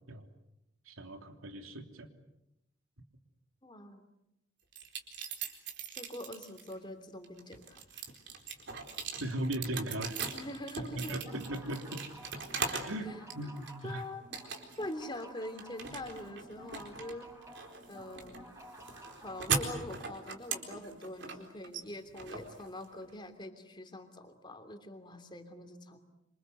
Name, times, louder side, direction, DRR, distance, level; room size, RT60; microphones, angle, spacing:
voice 1, 0.9-2.1 9.2-10.2 10.8-12.0 12.6-13.1 13.3-14.0, right 1 dB, 90° right, 5 dB, 3.2 m, -38 dB
voice 2, 3.6-4.1 6.0-7.8 10.2-11.2 13.0-13.2 13.8-14.2 14.8-17.3 17.9-18.5 19.2-26.0, left 1 dB, 20° left, 7 dB, 3.1 m, -44 dB
sound 1, 4.7-6.7 7.2-13.0 13.3-13.9 14.3-14.9 15.2-23.1, right 5 dB, 60° right, 4.2 m, -39 dB
sound 2, 11.1-20.0, right 1 dB, 15° right, 5.8 m, -53 dB
27.0 x 27.0 x 8.1 m, 0.88 s
head